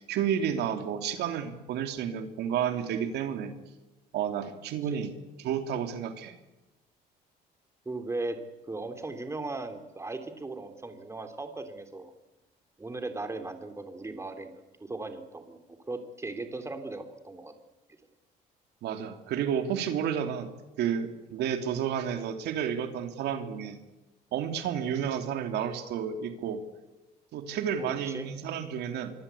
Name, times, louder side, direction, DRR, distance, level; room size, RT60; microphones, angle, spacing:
voice 1, 0.0-3.5 4.1-6.3 18.8-20.5 20.8-23.8 24.3-26.6 27.3-29.1, right 8 dB, 75° right, 7 dB, 2.9 m, -31 dB
voice 2, 7.8-8.4 8.7-12.1 12.8-14.5 14.8-15.6 15.9-17.5 27.8-28.3, right 2 dB, 15° right, 7 dB, 3.4 m, -37 dB
25.0 x 24.0 x 8.5 m, 1.0 s
cardioid pair, 110°, 17 cm